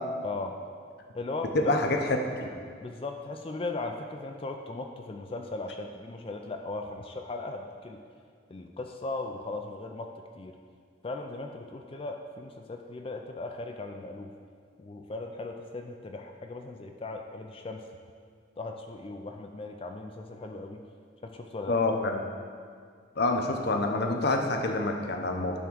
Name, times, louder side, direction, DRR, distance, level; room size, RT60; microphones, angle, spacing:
voice 1, 0.2-0.6 1.1-1.7 2.8-8.0 8.5-10.6 11.0-14.3 14.8-17.9 18.6-20.8 21.2-21.8, left 2 dB, 25° left, 4 dB, 0.3 m, -38 dB
voice 2, 1.5-2.5 21.7-22.1 23.2-25.6, left 2 dB, 50° left, 3 dB, 0.7 m, -27 dB
10.5 x 3.6 x 6.2 m, 2.1 s
head